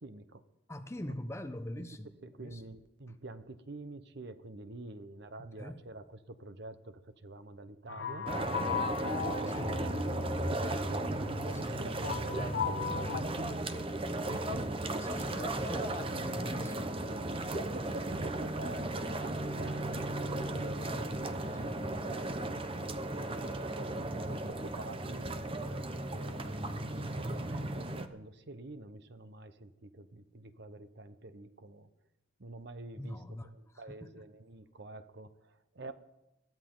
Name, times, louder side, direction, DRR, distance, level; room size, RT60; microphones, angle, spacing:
voice 1, 0.0-0.4 1.0-1.1 2.2-8.3 8.9-13.9 14.2-14.8 17.6-22.6 23.7-31.9 32.4-35.9, right 2 dB, 60° right, 11 dB, 1.0 m, -47 dB
voice 2, 0.7-2.1 2.4-2.6 5.6-5.8 9.5-9.8 11.6-11.8 15.0-16.9 20.9-21.1 21.6-21.8 33.0-33.5 34.2-34.3, left 1 dB, 15° left, 8 dB, 0.9 m, -42 dB
sound 1, 7.9-13.2, left 5 dB, 70° left, 1.5 m, -37 dB
sound 2, 8.3-28.1, right 1 dB, 30° right, 0.9 m, -36 dB
21.5 x 14.5 x 3.9 m, 0.93 s
head